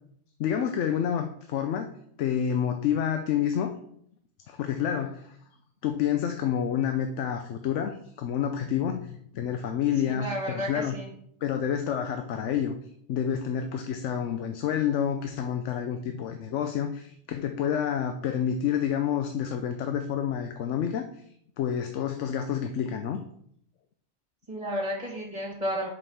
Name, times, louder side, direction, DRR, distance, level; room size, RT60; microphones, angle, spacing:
voice 1, 0.4-1.9 2.2-3.7 4.5-5.4 5.8-11.0 11.4-12.7 13.1-21.2 21.6-23.2, left 8 dB, 90° left, 7 dB, 1.0 m, -28 dB
voice 2, 10.0-11.1 24.5-25.9, equal, 25° right, -4 dB, 1.9 m, -32 dB
5.4 x 5.3 x 6.3 m, 0.67 s
omnidirectional pair, 1.2 m